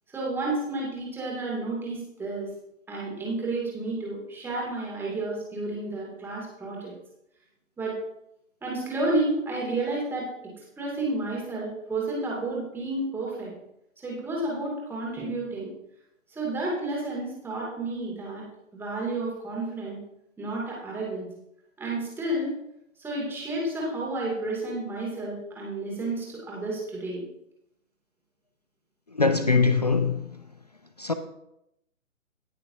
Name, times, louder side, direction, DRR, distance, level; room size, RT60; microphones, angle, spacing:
voice 1, 0.1-2.5 2.9-6.9 7.8-7.9 8.6-10.3 10.6-13.5 14.0-15.7 16.3-18.4 18.7-20.0 20.4-21.3 21.8-22.5 23.0-27.3, right 2 dB, 5° right, 2.5 m, -31 dB
voice 2, 29.1-30.4 31.0-31.1, left 4 dB, 35° left, 0.4 m, -22 dB
18.5 x 6.6 x 2.8 m
figure-of-eight pair, 130°, 40 cm